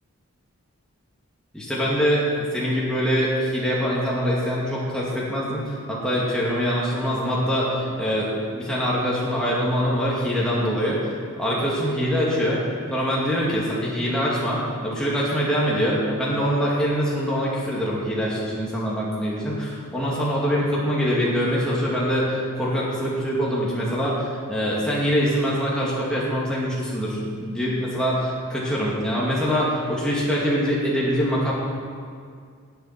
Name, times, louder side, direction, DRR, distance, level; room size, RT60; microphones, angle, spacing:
voice 1, 1.5-11.0 11.4-12.6 12.9-31.5, equal, 5° left, -7 dB, 2.3 m, -24 dB
19.0 x 7.2 x 5.9 m, 2.1 s
head